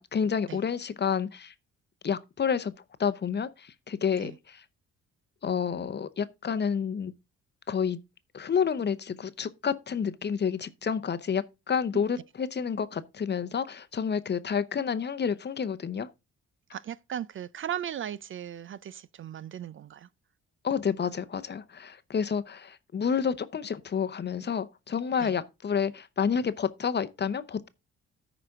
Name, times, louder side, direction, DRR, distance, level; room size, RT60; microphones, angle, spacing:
voice 1, 0.0-1.5 2.0-2.7 3.0-4.6 5.4-7.1 7.7-8.0 8.3-16.1 20.6-27.7, left 7 dB, 35° left, 0.8 m, -29 dB
voice 2, 16.7-20.1 25.2-25.4, right 10 dB, 45° right, 0.4 m, -37 dB
13.5 x 5.0 x 3.6 m
cardioid pair, 90°, 30 cm